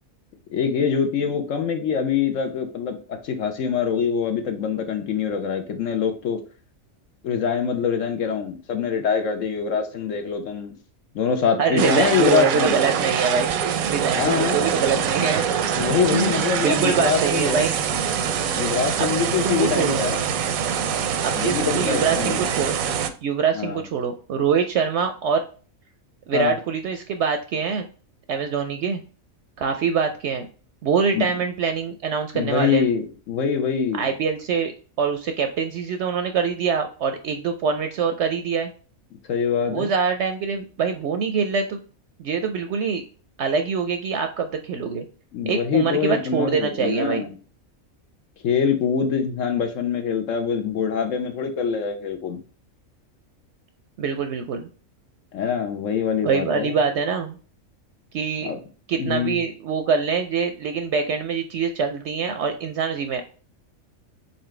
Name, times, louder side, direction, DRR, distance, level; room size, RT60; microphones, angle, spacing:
voice 1, 0.5-3.0 3.2-6.4 7.2-10.7 11.1-12.8 14.1-14.7 15.7-17.7 18.5-20.3 21.3-22.5 23.5-23.8 26.3-26.6 31.1-31.3 32.3-34.1 39.3-39.9 45.3-47.3 48.4-52.4 55.3-56.8 58.4-58.6 58.9-59.4, left 7 dB, 70° left, 6 dB, 1.1 m, -24 dB
voice 2, 11.6-13.5 13.9-15.5 16.1-17.7 19.0-19.1 19.4-20.0 21.2-22.7 23.2-25.4 26.3-27.9 28.3-29.0 29.6-30.5 30.8-32.9 34.0-38.7 39.7-41.8 42.2-43.0 43.4-45.1 45.5-47.2 54.0-54.7 56.2-57.4 58.1-58.5 58.9-63.2, right 6 dB, 65° right, 7 dB, 0.8 m, -24 dB
sound 1, 11.8-23.1, right 8 dB, 90° right, 1.0 m, -24 dB
4.3 x 3.8 x 3.1 m, 0.39 s
omnidirectional pair, 1.4 m